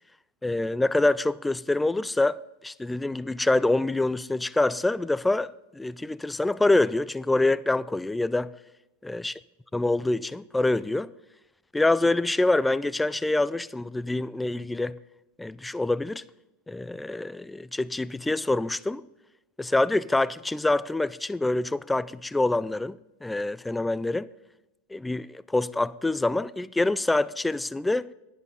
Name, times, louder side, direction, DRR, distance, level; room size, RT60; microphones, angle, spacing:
voice 1, 0.4-2.4 2.6-8.5 9.0-9.4 9.7-11.1 11.7-15.0 15.4-16.3 16.7-19.0 19.6-24.3 24.9-28.1, left 2 dB, 10° left, 0.4 m, -26 dB
11.0 x 10.5 x 3.9 m
hypercardioid pair, 105°, 0 cm